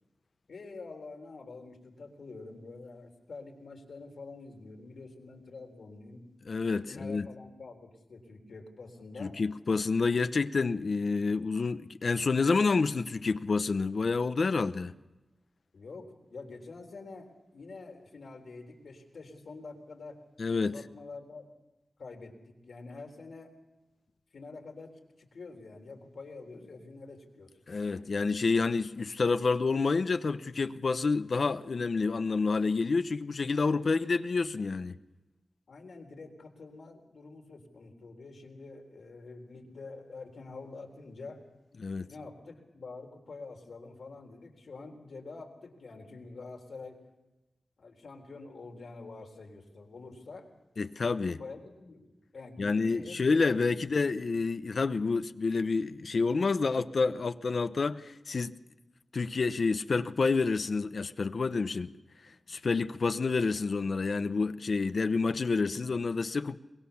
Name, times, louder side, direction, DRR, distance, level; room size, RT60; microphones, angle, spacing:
voice 1, 0.5-6.2 6.9-9.4 15.7-20.2 20.6-21.5 22.0-23.5 24.3-27.5 35.7-41.4 42.0-47.0 47.8-50.5 51.3-53.2, left 3 dB, 85° left, 3.7 m, -47 dB
voice 2, 6.5-7.3 9.2-14.9 20.4-20.8 27.7-35.0 41.8-42.1 50.8-51.4 52.6-58.6 59.1-61.9 62.2-66.6, left 4 dB, 65° left, 0.8 m, -28 dB
23.0 x 22.0 x 7.1 m
wide cardioid pair, 95°, 0 cm